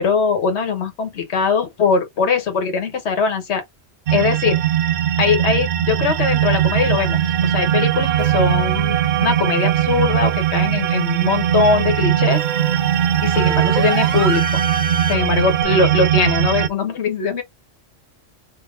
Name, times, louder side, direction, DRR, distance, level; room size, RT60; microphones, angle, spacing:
voice 1, 0.0-3.6 4.1-4.6 5.2-12.4 13.2-14.6 15.1-17.4, left 5 dB, 60° left, 1.4 m, -21 dB
sound 1, 4.1-16.7, right 11 dB, 65° right, 0.8 m, -19 dB
sound 2, 6.0-15.6, right 4 dB, 40° right, 1.2 m, -32 dB
3.6 x 2.8 x 3.6 m
omnidirectional pair, 1.3 m